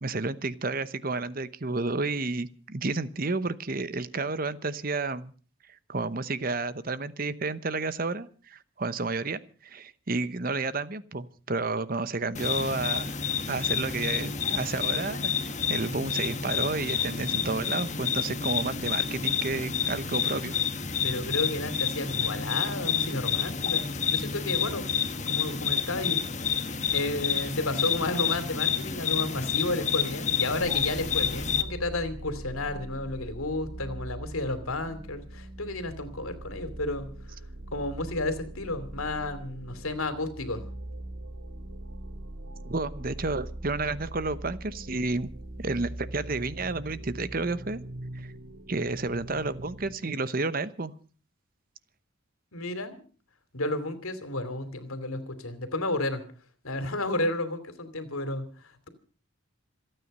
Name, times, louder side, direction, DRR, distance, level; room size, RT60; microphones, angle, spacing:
voice 1, 0.0-5.3 5.9-13.2 13.5-20.6 42.6-45.3 45.6-47.8 48.1-48.3 48.7-50.9, right 3 dB, 45° right, 15 dB, 0.9 m, -31 dB
sound 1, 12.3-31.6, left 7 dB, 35° left, 1.2 m, -29 dB
voice 2, 21.0-24.9 25.3-26.2 26.9-37.1 37.7-40.6 52.5-53.0 53.5-56.2 56.6-58.9, left 2 dB, 85° left, 11 dB, 2.8 m, -32 dB
sound 2, 30.6-50.0, right 1 dB, 80° right, 2.0 m, -41 dB
27.0 x 9.2 x 5.5 m, 0.40 s
head